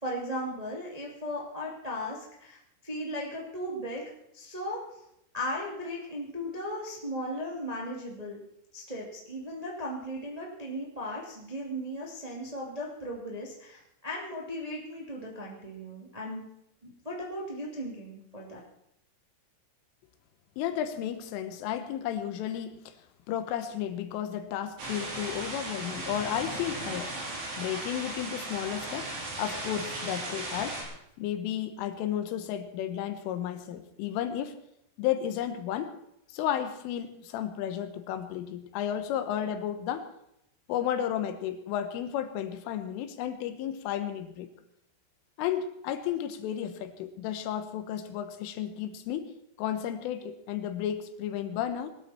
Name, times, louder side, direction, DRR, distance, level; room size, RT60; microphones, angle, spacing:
voice 1, 0.0-2.6 2.8-4.8 5.3-8.4 8.7-16.4 16.8-18.6, equal, 85° right, -3 dB, 0.3 m, -37 dB
voice 2, 20.6-22.9 23.3-27.1 27.6-29.1 29.4-30.8 31.2-34.6 35.0-36.0 36.3-40.1 40.7-44.5 45.4-49.3 49.6-51.9, left 10 dB, 80° left, 9 dB, 3.5 m, -33 dB
powerful rain thunder and hailstorm, 24.8-30.8, right 2 dB, 65° right, 6.4 m, -37 dB
21.5 x 12.5 x 4.3 m, 0.78 s
omnidirectional pair, 5.9 m